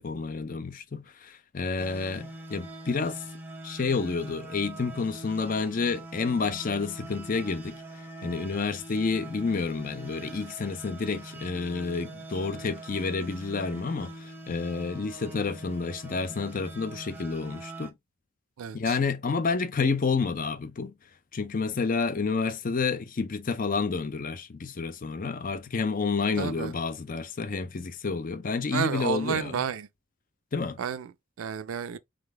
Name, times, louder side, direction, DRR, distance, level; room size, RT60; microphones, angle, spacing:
voice 1, 0.0-3.2 3.6-7.8 8.2-17.9 18.7-20.9 21.3-29.6 30.5-30.8, left 4 dB, 40° left, 0.5 m, -29 dB
sound 1, 1.8-17.9, right 2 dB, 10° right, 0.7 m, -43 dB
voice 2, 18.6-19.0 26.3-26.7 28.7-29.9 30.8-32.0, right 8 dB, 75° right, 0.4 m, -31 dB
3.8 x 3.3 x 3.3 m
head